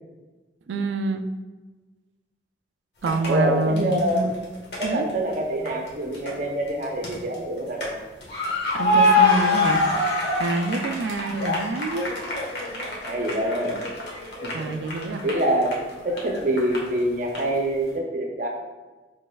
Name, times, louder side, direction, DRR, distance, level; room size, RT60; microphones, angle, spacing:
voice 1, 0.7-1.3 3.0-4.3 4.8-5.1 8.7-9.8 10.4-12.2 14.5-15.2, right 3 dB, 90° right, 7 dB, 0.4 m, -26 dB
sound 1, 3.0-3.3 3.8-5.3 5.7-6.3 6.7-7.9 8.2-17.0 17.3-17.4, left 2 dB, 75° left, 1.1 m, -25 dB
voice 2, 3.2-4.3 4.8-8.0 12.9-13.8 14.4-14.7 15.2-18.5, right 1 dB, 45° right, 1 dB, 0.7 m, -25 dB
5.2 x 3.4 x 2.3 m, 1.3 s
head